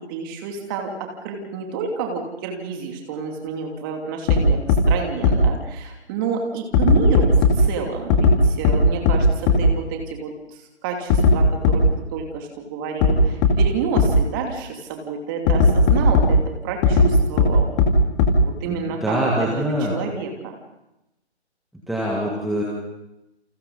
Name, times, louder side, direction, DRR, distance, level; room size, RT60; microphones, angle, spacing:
voice 1, 0.1-10.3 10.8-11.8 12.1-17.7 18.4-19.3 19.6-20.6, right 5 dB, 20° right, 2 dB, 2.8 m, -29 dB
sound 1, 4.3-4.4 4.7-4.8 5.2-5.3 6.7-7.5 8.1-8.3 8.6-8.7 9.1-9.2 9.5-9.6 11.1-11.3 11.6-11.7 13.0-13.1 13.4-13.5 14.0-14.1 15.5-16.2 16.8-17.1 17.4-17.5 17.8-17.9 18.2-18.3, left 7 dB, 15° left, 2.4 m, -15 dB
voice 2, 18.6-20.0 21.9-22.6, equal, ahead, -5 dB, 1.7 m, -24 dB
29.0 x 28.0 x 4.1 m, 0.93 s
figure-of-eight pair, 145°, 34 cm